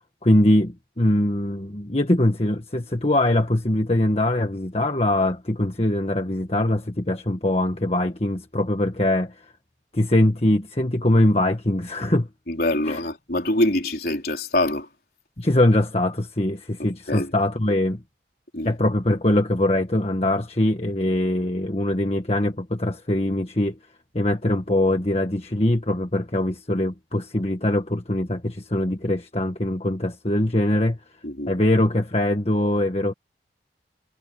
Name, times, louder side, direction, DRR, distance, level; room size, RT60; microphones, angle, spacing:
voice 1, 0.2-9.4 9.9-12.3 12.8-13.0 15.4-18.0 18.6-23.8 24.1-31.0 31.5-33.1, left 1 dB, 35° left, 1.6 m, -22 dB
voice 2, 12.5-14.9 16.8-17.3 18.5-18.7 31.2-31.5, left 1 dB, 55° left, 4.3 m, -24 dB
head